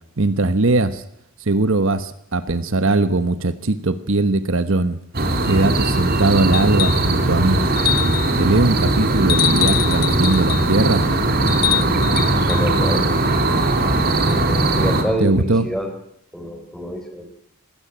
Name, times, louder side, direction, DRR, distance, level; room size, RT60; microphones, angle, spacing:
voice 1, 0.2-1.0 1.4-5.0 5.4-7.6 8.4-11.0 15.2-15.7, right 2 dB, 65° right, 12 dB, 1.2 m, -20 dB
sound 1, 5.1-15.0, right 2 dB, 45° right, 3.4 m, -19 dB
sound 2, 6.5-7.1 7.8-8.4 9.3-10.7 11.5-12.7 14.3-14.4, left 13 dB, 45° left, 0.8 m, -24 dB
voice 2, 12.5-13.1 14.4-15.9 16.3-17.2, equal, 5° left, 5 dB, 4.3 m, -27 dB
20.0 x 17.0 x 9.1 m, 0.75 s
head